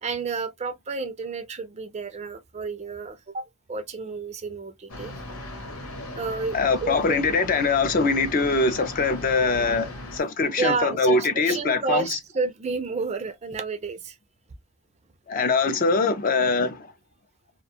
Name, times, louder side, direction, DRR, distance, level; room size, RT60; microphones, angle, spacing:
voice 1, 0.0-5.1 6.2-7.2 10.6-14.2, right 4 dB, 30° right, 0.4 m, -30 dB
sound 1, 4.9-10.2, left 1 dB, 90° left, 1.1 m, -38 dB
voice 2, 6.5-12.2 15.3-16.9, left 3 dB, 40° left, 0.4 m, -23 dB
2.4 x 2.2 x 2.7 m
head